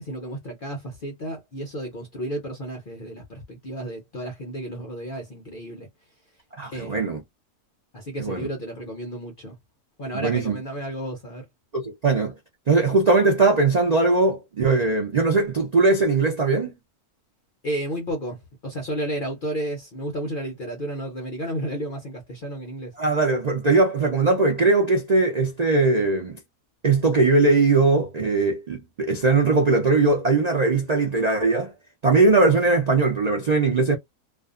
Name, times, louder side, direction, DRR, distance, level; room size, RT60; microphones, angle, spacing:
voice 1, 0.0-5.9 6.7-7.1 7.9-9.6 10.0-11.5 17.6-22.9, right 1 dB, 55° left, 0.5 m, -32 dB
voice 2, 6.6-7.2 8.2-8.5 10.1-10.6 11.7-12.3 12.7-16.8 23.0-26.4 26.8-31.7 32.0-34.0, right 3 dB, 80° right, 0.3 m, -20 dB
2.5 x 2.4 x 2.4 m
omnidirectional pair, 1.6 m